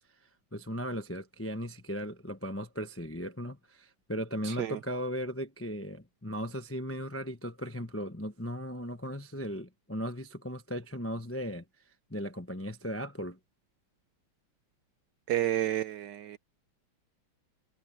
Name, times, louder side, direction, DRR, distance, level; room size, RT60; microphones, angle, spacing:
voice 1, 0.5-11.6 12.1-13.4, equal, 20° left, 0.3 m, -37 dB
voice 2, 4.4-4.8 15.3-16.4, right 13 dB, 70° right, 1.1 m, -30 dB
omnidirectional pair, 2.3 m